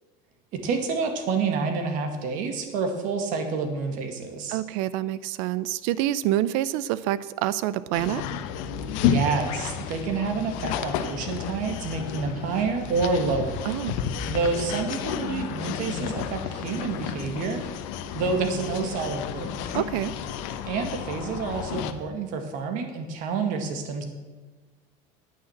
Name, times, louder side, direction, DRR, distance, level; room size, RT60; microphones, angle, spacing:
voice 1, 0.5-4.6 9.0-13.7 14.3-17.6 18.1-19.7 20.7-24.1, right 4 dB, 50° right, 6 dB, 2.0 m, -28 dB
voice 2, 4.5-8.2 13.6-14.0 19.7-20.1, right 13 dB, 75° right, 17 dB, 0.6 m, -27 dB
sound 1, 7.9-21.9, left 8 dB, 75° left, 1.0 m, -31 dB
9.8 x 9.4 x 7.3 m, 1.3 s
cardioid pair, 160°, 17 cm